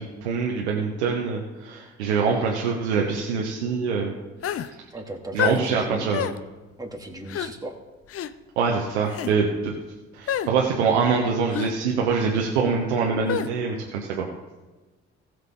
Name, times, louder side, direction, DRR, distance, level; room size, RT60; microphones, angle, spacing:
voice 1, 0.0-4.1 5.3-6.3 8.6-9.7 10.1-14.2, right 5 dB, 75° right, 0 dB, 1.2 m, -24 dB
sound 1, 4.4-4.7 5.4-5.6 6.1-6.4 7.3-7.5 8.1-8.3 9.1-9.3 10.3-10.5 11.5-11.7 13.3-13.5, left 10 dB, 40° left, 0.7 m, -27 dB
voice 2, 4.9-6.1 6.8-7.8, right 1 dB, 10° right, 0 dB, 2.6 m, -37 dB
19.5 x 6.5 x 3.8 m, 1.2 s
figure-of-eight pair, 45°, 34 cm